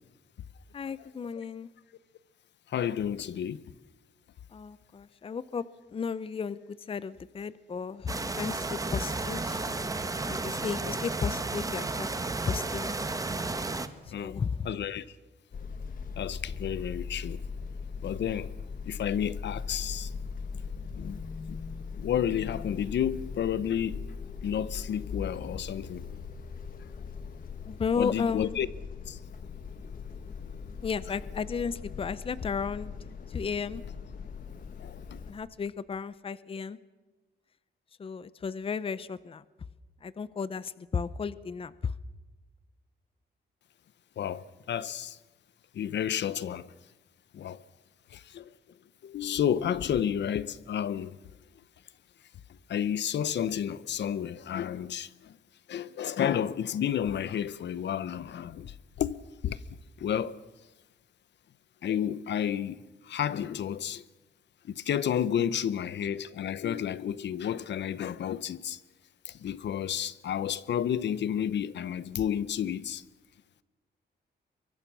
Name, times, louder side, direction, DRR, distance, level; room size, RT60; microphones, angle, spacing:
voice 1, 0.7-1.7 4.5-6.6 6.9-9.7 10.3-12.1 12.4-13.1 14.2-14.7 27.6-28.6 30.8-32.9 33.3-33.8 35.3-36.8 38.0-39.4 40.0-41.9, left 6 dB, 30° left, 0.7 m, -34 dB
voice 2, 2.7-3.6 14.1-14.4 14.6-15.0 16.2-17.4 18.0-18.5 18.9-20.1 20.9-21.2 21.5-21.6 22.0-24.0 24.4-26.1 27.9-28.7 29.1-29.2 34.8-35.2 44.2-45.2 45.7-46.7 47.3-47.6 48.1-48.5 49.0-51.2 52.7-55.4 55.7-59.2 59.4-59.6 60.0-60.4 61.8-62.8 63.0-64.0 64.6-68.8 69.2-73.0, left 9 dB, 75° left, 0.9 m, -31 dB
sound 1, 8.1-13.9, right 3 dB, 20° right, 1.3 m, -33 dB
sound 2, 15.5-35.3, left 5 dB, 50° left, 1.6 m, -40 dB
24.0 x 23.0 x 6.2 m
wide cardioid pair, 145°, 19 cm